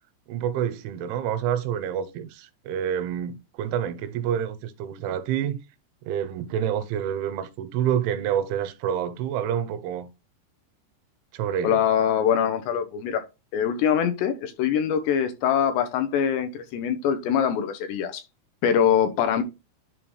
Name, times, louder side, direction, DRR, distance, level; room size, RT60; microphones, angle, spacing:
voice 1, 0.3-5.6 6.1-10.1 11.3-11.8, right 9 dB, 90° right, 3.2 m, -28 dB
voice 2, 11.6-13.2 13.5-18.2 18.6-19.4, left 8 dB, 80° left, 2.8 m, -23 dB
11.0 x 3.7 x 3.2 m
omnidirectional pair, 5.4 m